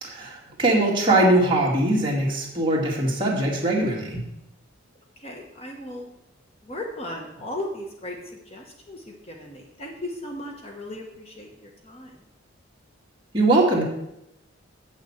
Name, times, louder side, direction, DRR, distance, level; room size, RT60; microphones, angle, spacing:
voice 1, 0.0-4.2 13.3-13.8, right 2 dB, 25° right, -3 dB, 2.3 m, -21 dB
voice 2, 5.2-6.1 6.6-8.2 8.5-12.2, left 1 dB, 30° left, 1 dB, 1.2 m, -36 dB
8.1 x 6.5 x 7.2 m, 0.86 s
head